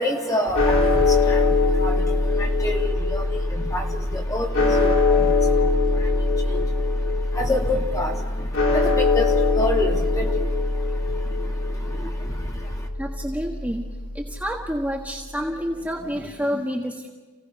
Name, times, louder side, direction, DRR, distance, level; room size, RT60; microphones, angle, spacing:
voice 1, 0.0-1.9 2.6-2.8 3.1-3.2 3.6-3.8 4.1-5.3 6.5-6.6 7.4-8.1 9.1-9.3 9.6-10.3, left 1 dB, 15° left, 0 dB, 2.5 m, -26 dB
sound 1, 0.5-14.8, left 3 dB, 65° left, 3.4 m, -22 dB
voice 2, 13.0-13.8 14.1-17.1, equal, 10° right, -1 dB, 1.5 m, -28 dB
29.5 x 17.0 x 5.5 m, 1.4 s
head